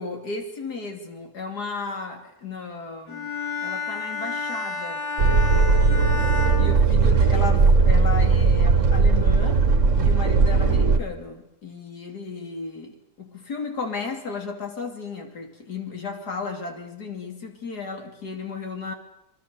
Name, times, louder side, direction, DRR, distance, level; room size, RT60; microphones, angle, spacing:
voice 1, 0.0-3.3 3.6-5.0 6.6-9.6 10.0-18.9, left 4 dB, 85° left, 3.4 m, -34 dB
Bowed string instrument, 3.1-7.6, left 4 dB, 60° left, 7.3 m, -31 dB
sound 1, 5.2-11.0, right 4 dB, 50° right, 1.7 m, -18 dB
26.5 x 23.0 x 6.8 m
omnidirectional pair, 1.7 m